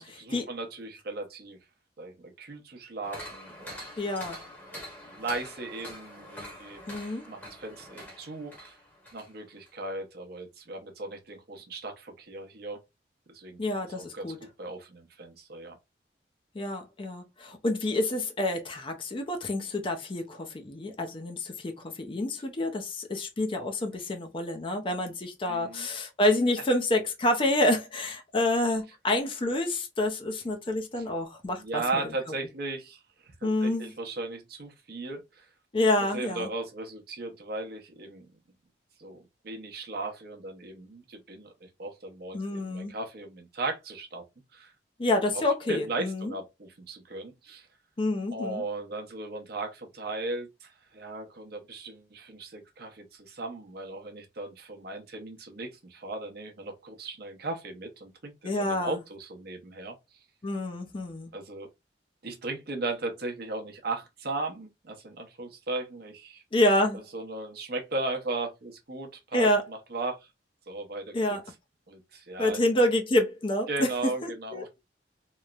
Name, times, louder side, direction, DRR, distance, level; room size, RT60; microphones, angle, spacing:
voice 1, 0.0-1.6 2.0-3.7 4.7-6.8 7.3-8.8 9.1-12.8 13.3-13.6 13.9-14.3 14.6-15.8 25.5-25.9 26.6-26.7 31.6-35.5 36.1-38.2 39.0-39.2 39.4-44.2 44.5-44.7 45.3-45.4 45.7-47.7 48.3-60.0 61.3-61.7 62.2-66.4 67.1-70.3 70.7-71.4 71.9-72.6 73.7-74.8, right 2 dB, 60° right, 0.7 m, -37 dB
sound 1, 3.0-9.3 9.7-9.8, equal, 10° left, 0.9 m, -45 dB
voice 2, 4.0-4.4 6.9-7.3 13.6-14.4 16.5-31.8 33.4-33.9 35.7-36.5 42.3-42.9 45.0-46.3 48.0-48.6 58.4-59.0 60.4-61.3 66.5-67.0 69.3-69.6 71.1-71.4 72.4-74.6, left 1 dB, 30° left, 0.5 m, -28 dB
3.0 x 2.0 x 2.3 m
head